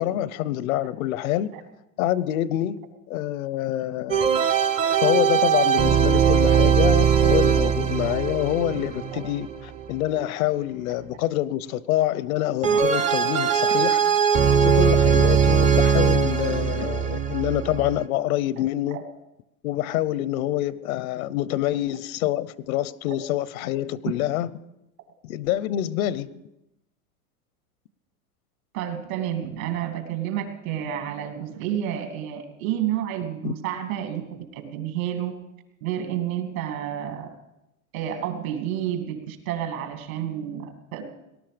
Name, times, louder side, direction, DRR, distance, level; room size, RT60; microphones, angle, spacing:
voice 1, 0.0-1.5 2.0-4.4 5.0-9.5 9.9-14.0 14.6-19.0 19.6-24.5 25.2-26.3 33.4-33.5, left 13 dB, 75° left, 0.8 m, -26 dB
sound 1, 4.1-10.2 12.6-18.0, right 7 dB, 20° right, 0.4 m, -20 dB
voice 2, 28.7-35.3 35.8-37.3 37.9-41.1, right 10 dB, 75° right, 2.7 m, -30 dB
19.0 x 11.5 x 5.1 m
supercardioid pair, 140°, 42 cm